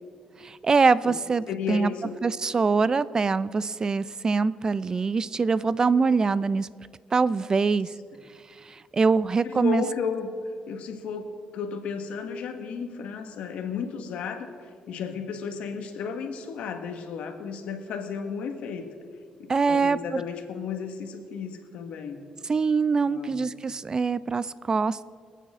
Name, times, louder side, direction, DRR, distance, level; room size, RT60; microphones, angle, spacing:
voice 1, 0.4-1.9 2.2-6.7 7.1-7.9 8.6-9.8 19.5-20.2 22.5-25.0, right 4 dB, 35° right, 18 dB, 0.4 m, -24 dB
voice 2, 1.5-2.1 9.4-10.3 10.7-18.9 19.4-22.2 23.0-23.4, left 6 dB, 80° left, 6 dB, 1.5 m, -34 dB
25.0 x 9.2 x 3.7 m, 2.1 s
cardioid pair, 85°, 2 cm